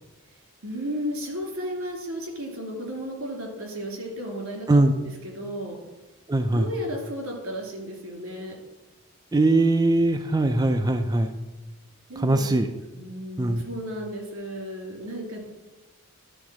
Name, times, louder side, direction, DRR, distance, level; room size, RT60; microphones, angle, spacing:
voice 1, 0.6-5.8 6.5-8.6 12.1-12.6 12.9-15.4, equal, 85° right, 0 dB, 2.7 m, -34 dB
voice 2, 6.3-6.7 9.3-11.3 12.2-12.7 13.4-13.6, right 2 dB, 20° right, 5 dB, 0.4 m, -21 dB
11.5 x 3.9 x 6.1 m, 1.1 s
head